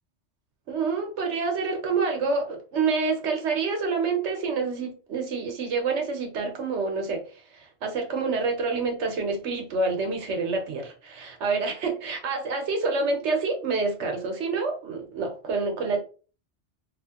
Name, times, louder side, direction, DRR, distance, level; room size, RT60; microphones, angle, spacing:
voice 1, 0.7-7.2 7.5-16.0, right 4 dB, 70° right, 4 dB, 1.1 m, -27 dB
2.9 x 2.4 x 2.8 m, 0.37 s
omnidirectional pair, 1.2 m